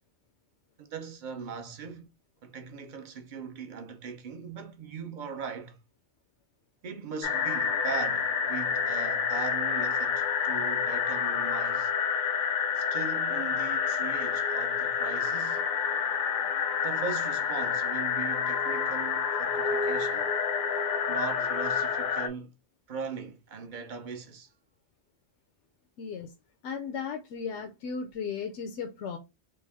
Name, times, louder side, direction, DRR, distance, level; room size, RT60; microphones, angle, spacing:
voice 1, 0.8-2.1 2.4-5.8 6.8-11.9 12.8-15.6 16.8-20.4 21.1-22.5 22.9-24.5, right 6 dB, 50° right, 0.7 m, -39 dB
sound 1, 7.2-22.3, left 6 dB, 60° left, 0.6 m, -28 dB
voice 2, 26.0-26.3 26.6-29.2, left 6 dB, 80° left, 0.9 m, -35 dB
3.4 x 2.5 x 3.3 m
omnidirectional pair, 1.2 m